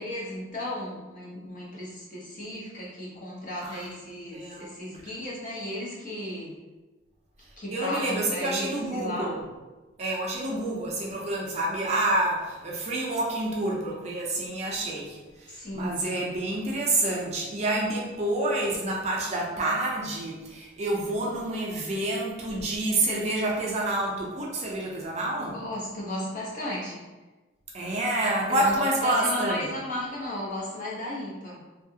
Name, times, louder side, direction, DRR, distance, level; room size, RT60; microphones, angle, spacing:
voice 1, 0.0-6.5 7.6-9.3 15.5-16.0 25.3-27.0 28.6-31.6, left 1 dB, 40° left, -5 dB, 0.8 m, -34 dB
voice 2, 3.6-3.9 4.3-4.7 7.7-9.4 10.0-25.5 27.7-29.6, right 2 dB, 35° right, -2 dB, 0.4 m, -28 dB
2.8 x 2.3 x 2.7 m, 1.2 s
head